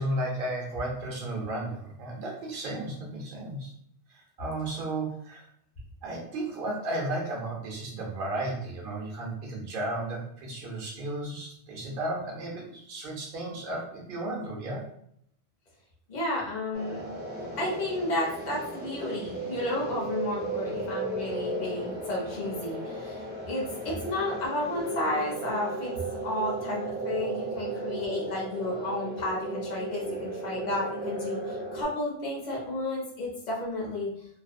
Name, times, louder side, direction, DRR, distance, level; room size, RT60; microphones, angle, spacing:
voice 1, 0.0-3.7 4.1-5.4 6.0-14.8 23.9-24.0, right 1 dB, 55° right, -2 dB, 0.8 m, -34 dB
voice 2, 16.1-17.0 17.6-25.9 26.2-34.1, left 1 dB, 45° left, -4 dB, 0.8 m, -32 dB
sound 1, 16.7-31.8, right 2 dB, 15° right, 0.3 m, -35 dB
2.5 x 2.0 x 2.5 m, 0.68 s
omnidirectional pair, 1.2 m